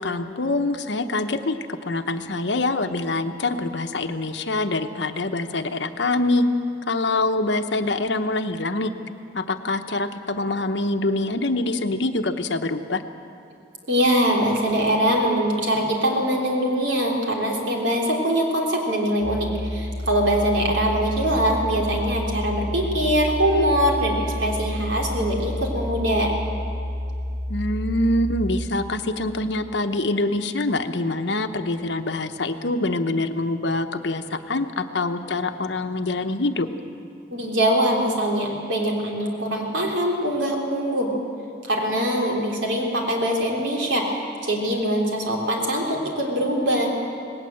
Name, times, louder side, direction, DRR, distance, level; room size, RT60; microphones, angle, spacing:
voice 1, 0.0-6.4 6.9-8.9 9.3-13.0 27.5-36.7, left 2 dB, 75° left, 8 dB, 1.0 m, -25 dB
voice 2, 13.9-26.3 37.3-41.1 41.6-46.9, equal, 85° right, -1 dB, 3.6 m, -23 dB
sound 1, 19.2-28.6, left 1 dB, 25° right, 6.4 m, -30 dB
19.0 x 18.0 x 7.8 m, 2.6 s
head